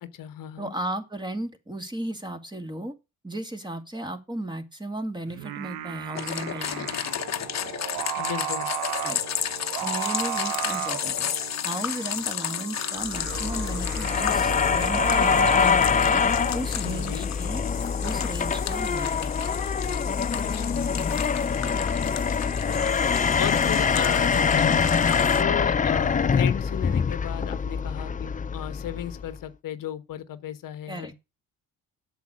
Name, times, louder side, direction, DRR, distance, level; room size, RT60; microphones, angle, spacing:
voice 1, 0.0-0.7 8.2-8.7 16.8-17.3 20.4-20.9 21.2-21.7 22.7-23.0 23.4-24.9 25.4-31.1, left 11 dB, 65° left, 1.2 m, -35 dB
voice 2, 0.6-2.9 3.2-6.9 9.0-9.2 9.8-11.3 11.6-16.2 16.5-17.7 18.0-19.3 21.3-21.4 30.9-31.1, right 1 dB, 10° right, 2.3 m, -35 dB
Singing, 5.3-15.7, right 12 dB, 75° right, 0.9 m, -34 dB
sound 1, 6.1-25.4, left 10 dB, 45° left, 1.1 m, -33 dB
sound 2, 13.0-29.4, left 6 dB, 20° left, 0.5 m, -24 dB
8.3 x 6.7 x 6.3 m
supercardioid pair, 65°, 36 cm